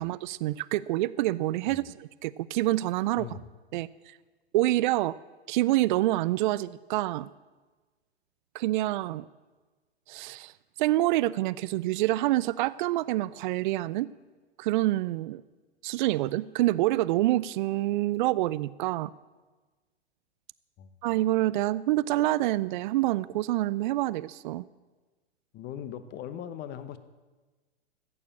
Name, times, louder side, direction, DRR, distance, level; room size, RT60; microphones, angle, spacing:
voice 1, 0.0-3.3 3.7-3.9 4.5-5.2 5.5-7.3 8.5-9.3 10.1-10.5 10.8-14.1 14.6-15.4 15.8-19.1 21.0-24.7, right 16 dB, 50° right, 18 dB, 0.4 m, -27 dB
voice 2, 25.5-27.0, left 9 dB, 30° left, 12 dB, 1.0 m, -39 dB
15.0 x 6.9 x 8.7 m, 1.3 s
hypercardioid pair, 115°, 33 cm